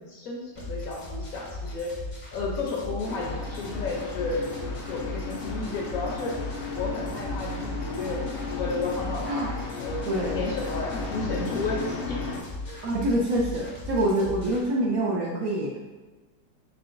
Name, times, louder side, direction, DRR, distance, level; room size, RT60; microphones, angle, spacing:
voice 1, 0.0-2.0 2.3-4.5 4.9-6.4 6.7-12.3 12.6-12.8, left 3 dB, 60° left, -2 dB, 1.0 m, -32 dB
sound 1, 0.5-14.6, left 2 dB, 35° left, 0.7 m, -38 dB
sound 2, 3.0-12.4, left 4 dB, 75° left, 0.5 m, -35 dB
voice 2, 10.1-10.4 12.8-15.8, right 1 dB, 65° right, -2 dB, 0.9 m, -26 dB
4.8 x 4.2 x 2.5 m, 1.2 s
omnidirectional pair, 1.9 m